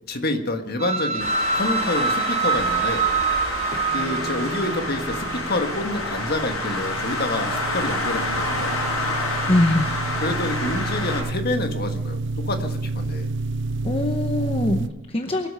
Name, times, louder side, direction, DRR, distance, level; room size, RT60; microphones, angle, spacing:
voice 1, 0.1-3.1 3.9-8.7 10.2-13.3, left 2 dB, 50° left, 6 dB, 1.5 m, -28 dB
sound 1, 0.8-5.9, right 5 dB, 30° right, 0.9 m, -25 dB
Traffic noise roadway noise, 1.2-11.2, left 2 dB, 85° left, 6.5 m, -28 dB
sound 2, 4.0-14.9, right 3 dB, 60° right, 0.6 m, -30 dB
voice 2, 9.5-9.9 13.8-15.5, left 1 dB, 30° left, 5 dB, 0.9 m, -22 dB
23.0 x 8.2 x 5.6 m, 0.89 s
head